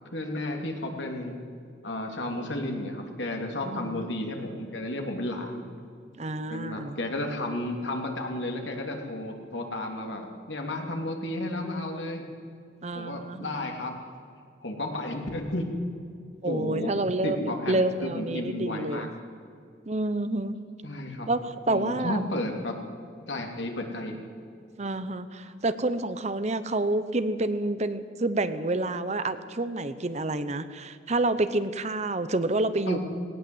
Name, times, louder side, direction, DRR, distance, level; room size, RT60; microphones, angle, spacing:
voice 1, 0.1-1.3 1.8-5.6 6.5-12.2 12.9-14.1 14.6-15.7 16.4-19.1 20.8-21.3 21.7-22.8 23.3-24.2 25.5-25.6 32.8-33.0, left 1 dB, 80° left, 2 dB, 3.1 m, -33 dB
voice 2, 3.6-4.1 6.2-7.0 12.8-13.7 16.4-19.1 19.9-20.6 21.3-22.3 24.8-33.0, right 2 dB, 40° right, 12 dB, 0.9 m, -28 dB
19.0 x 18.0 x 8.0 m, 2.3 s
head